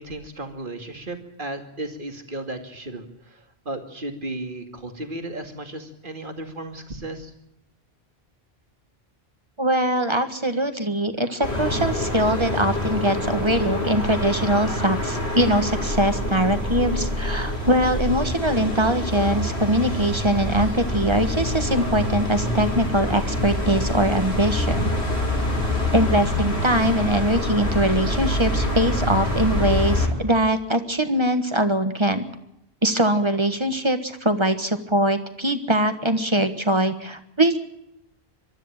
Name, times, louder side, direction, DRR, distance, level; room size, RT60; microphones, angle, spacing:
voice 1, 0.0-3.1 3.7-7.3, right 2 dB, 55° right, 6 dB, 2.6 m, -34 dB
voice 2, 9.6-24.9 25.9-32.2 32.8-37.6, right 1 dB, 25° right, 9 dB, 1.6 m, -22 dB
sound 1, 11.4-30.1, left 1 dB, 85° left, 5.6 m, -26 dB
23.0 x 13.0 x 8.9 m, 0.82 s
omnidirectional pair, 1.1 m